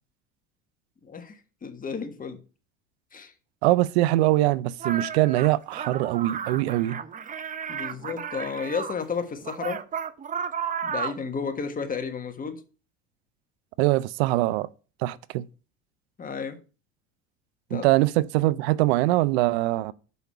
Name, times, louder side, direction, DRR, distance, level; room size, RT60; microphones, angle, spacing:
voice 1, 1.0-2.4 3.1-3.3 7.7-9.8 10.8-12.6 16.2-16.6 17.7-17.9, left 5 dB, 25° left, 1.5 m, -32 dB
voice 2, 3.6-7.0 13.8-14.7 15.0-15.4 17.7-19.9, right 17 dB, 80° right, 0.5 m, -23 dB
sound 1, 4.8-8.9 9.4-11.3, right 7 dB, 25° right, 0.6 m, -33 dB
6.4 x 5.4 x 5.7 m
supercardioid pair, 90°, 31 cm